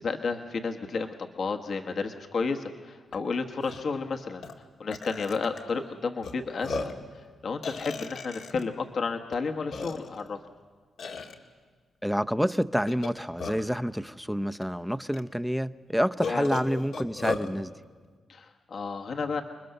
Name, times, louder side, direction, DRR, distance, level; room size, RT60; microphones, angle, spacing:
voice 1, 0.0-4.4 4.8-6.9 7.4-10.4 16.3-16.5 18.3-19.4, left 4 dB, 60° left, 4 dB, 1.3 m, -32 dB
Burping eructation, 3.1-3.2 3.6-3.8 4.4-4.5 4.9-5.6 6.2-6.3 6.6-7.0 7.6-8.6 9.3-9.4 9.7-10.3 11.0-11.3 12.9-13.8 14.6-14.7 15.1-15.2 16.2-17.5, left 4 dB, 85° left, 1.9 m, -35 dB
voice 2, 12.0-17.7, equal, ahead, 10 dB, 0.7 m, -28 dB
29.5 x 21.0 x 6.7 m, 1.5 s
cardioid pair, 70°, 0 cm